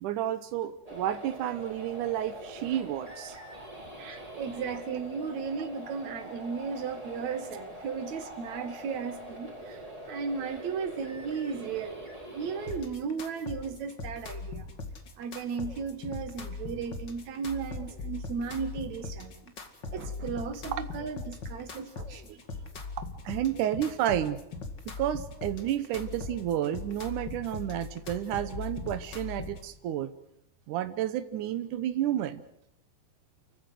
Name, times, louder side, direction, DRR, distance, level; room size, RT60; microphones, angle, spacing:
voice 1, 0.0-3.4 8.5-8.6 20.0-20.1 20.7-20.8 22.0-22.4 23.0-24.4 25.0-30.1 30.7-32.4, right 11 dB, 85° right, 12 dB, 1.7 m, -31 dB
sound 1, 0.9-12.8, right 1 dB, 10° right, 3.8 m, -44 dB
voice 2, 4.0-12.0 12.3-14.7 15.2-19.5 19.9-22.3, right 5 dB, 50° right, 9 dB, 2.5 m, -35 dB
sound 2, 12.7-29.7, left 3 dB, 40° left, 1.8 m, -40 dB
29.5 x 15.0 x 7.9 m, 0.80 s
omnidirectional pair, 5.0 m